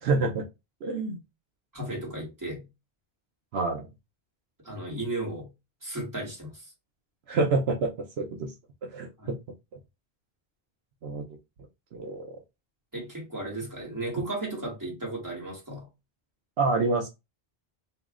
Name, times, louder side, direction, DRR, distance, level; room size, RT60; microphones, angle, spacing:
voice 1, 0.0-0.5 0.8-1.2 3.5-3.9 7.3-8.5 8.8-9.4 11.0-11.2 11.9-12.4 16.6-17.1, right 3 dB, 75° right, 0.9 m, -27 dB
voice 2, 1.7-2.6 4.6-5.5 5.8-6.7 9.2-9.3 12.9-15.8, right 2 dB, 20° right, 1.8 m, -35 dB
3.0 x 2.8 x 3.6 m
omnidirectional pair, 1.1 m